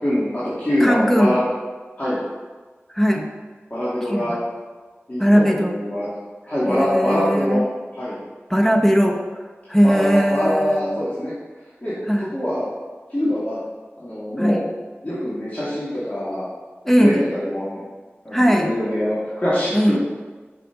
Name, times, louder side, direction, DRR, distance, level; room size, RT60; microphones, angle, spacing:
voice 1, 0.0-1.4 2.0-2.2 3.7-4.3 5.1-6.1 6.5-7.6 8.0-8.2 9.8-11.3 11.8-11.9 12.3-12.7 13.1-13.6 14.0-14.6 15.0-16.5 17.0-17.8 18.2-20.0, left 1 dB, 35° left, -11 dB, 2.6 m, -23 dB
voice 2, 0.8-1.4 2.9-3.3 4.1-4.4 5.2-5.8 6.7-7.7 8.5-9.2 9.7-11.0 12.1-12.3 14.4-14.6 16.8-17.3 18.3-18.7 19.7-20.0, equal, 5° left, 2 dB, 1.1 m, -18 dB
7.6 x 6.0 x 5.2 m, 1.3 s
wide cardioid pair, 45°, 5 cm